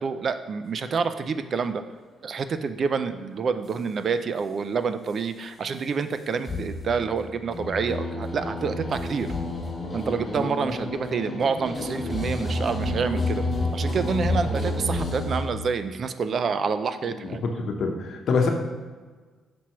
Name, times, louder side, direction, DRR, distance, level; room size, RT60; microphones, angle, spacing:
voice 1, 0.0-1.8 2.2-9.3 9.9-13.4 13.7-17.4, right 5 dB, 50° right, 11 dB, 0.4 m, -27 dB
sound 1, 6.5-15.5, left 2 dB, 25° left, 1.0 m, -29 dB
voice 2, 17.2-18.5, left 4 dB, 65° left, 3 dB, 0.9 m, -25 dB
6.0 x 5.6 x 3.1 m, 1.4 s
cardioid pair, 90°, 0 cm